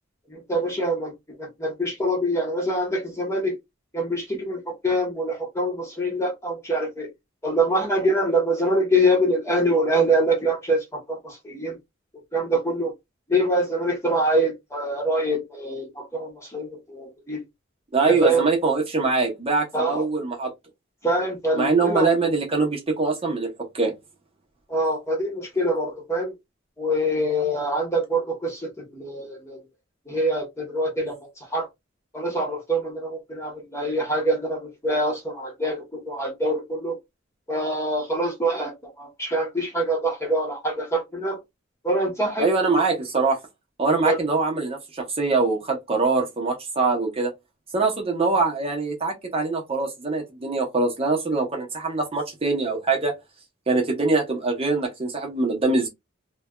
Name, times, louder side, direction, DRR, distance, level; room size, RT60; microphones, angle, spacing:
voice 1, 0.3-1.1 1.4-3.6 3.9-7.1 7.4-11.8 12.3-12.9 13.3-17.4 18.1-18.4 19.7-20.0 21.0-22.1 24.7-26.3 26.8-29.6 30.1-31.7 32.1-37.0 37.5-41.4 41.8-42.5 44.0-44.2, right 1 dB, 15° left, 1.1 m, -25 dB
voice 2, 17.9-20.5 21.6-23.9 42.4-43.4 43.8-47.3 47.7-53.1 53.7-55.9, right 3 dB, 30° right, 0.9 m, -23 dB
3.2 x 2.2 x 2.3 m
head